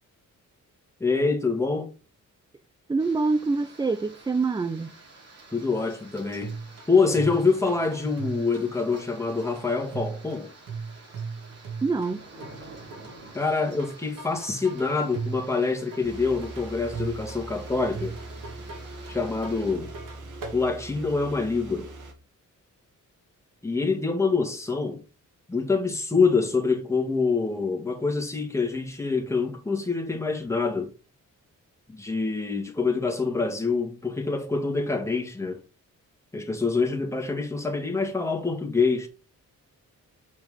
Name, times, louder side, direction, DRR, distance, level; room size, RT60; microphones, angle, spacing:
voice 1, 1.0-1.9 5.5-6.5 6.9-10.5 13.3-18.2 19.1-19.9 20.5-21.9 23.6-25.0 25.5-30.9 31.9-35.6 36.3-39.1, left 4 dB, 10° left, 1.9 m, -26 dB
voice 2, 2.9-4.9 11.8-12.3, right 3 dB, 15° right, 0.4 m, -25 dB
sound 1, 3.0-19.7, right 2 dB, 50° right, 3.3 m, -50 dB
sound 2, 6.4-20.6, right 5 dB, 85° right, 2.7 m, -39 dB
sound 3, 16.0-22.1, right 2 dB, 70° right, 2.5 m, -41 dB
7.1 x 6.1 x 3.5 m
wide cardioid pair, 165°, 32 cm